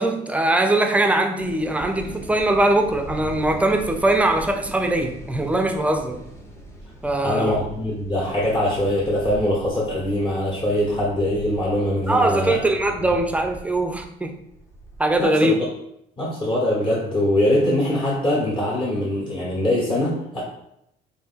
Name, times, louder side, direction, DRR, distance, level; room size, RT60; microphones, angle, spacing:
voice 1, 0.0-6.2 7.0-7.6 12.1-14.3 15.0-15.5, right 2 dB, 10° right, 5 dB, 0.4 m, -21 dB
sound 1, 1.4-15.2, right 2 dB, 15° left, 0.7 m, -40 dB
voice 2, 7.2-12.6 15.2-15.5 16.2-20.4, left 1 dB, 30° left, -5 dB, 1.1 m, -22 dB
3.3 x 2.6 x 3.6 m, 0.76 s
cardioid pair, 110°, 17 cm